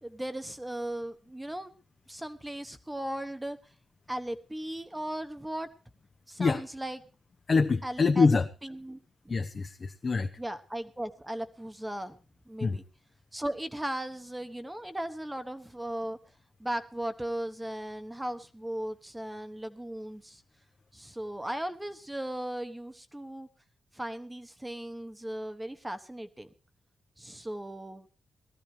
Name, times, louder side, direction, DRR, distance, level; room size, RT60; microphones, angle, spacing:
voice 1, 0.0-1.7 2.1-3.6 4.1-5.7 6.3-7.0 7.8-9.0 9.2-9.4 10.4-12.2 12.5-12.8 13.3-16.2 16.6-20.4 20.9-23.5 23.9-26.5 27.2-28.1, right 1 dB, 10° right, 9 dB, 1.1 m, -37 dB
voice 2, 7.5-8.5 9.3-10.3 12.6-12.8, left 4 dB, 35° left, 6 dB, 0.8 m, -25 dB
19.5 x 14.0 x 3.3 m, 0.33 s
wide cardioid pair, 165°, 0 cm